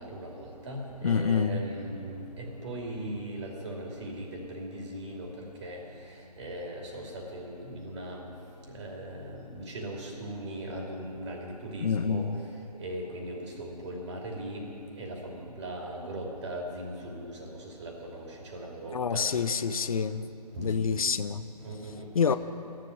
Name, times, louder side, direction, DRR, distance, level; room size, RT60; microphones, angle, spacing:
voice 1, 0.0-8.3 8.7-12.3 12.7-14.7 14.9-19.4 20.1-20.2 20.5-21.0 21.6-22.1, right 1 dB, 45° right, -1 dB, 2.8 m, -39 dB
voice 2, 1.0-1.7 11.8-12.4 18.9-20.3 20.6-21.5 22.1-22.4, left 6 dB, 60° left, 13 dB, 0.5 m, -27 dB
13.0 x 7.6 x 9.9 m, 3.0 s
figure-of-eight pair, 145°, 21 cm